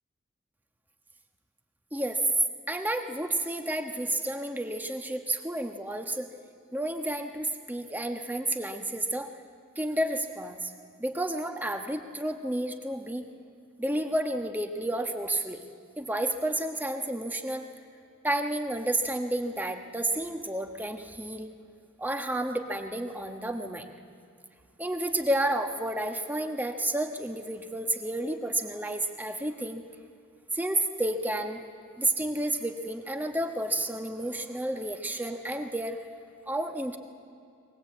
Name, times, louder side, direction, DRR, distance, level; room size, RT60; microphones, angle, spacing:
voice 1, 1.9-2.2 2.7-6.3 6.7-9.3 9.7-10.7 11.0-13.2 13.8-15.6 16.0-17.6 18.2-21.5 22.0-23.9 24.8-29.8 30.5-31.6 32.0-36.0 36.5-37.0, right 1 dB, 10° right, 5 dB, 1.3 m, -31 dB
22.5 x 19.0 x 8.5 m, 2.5 s
head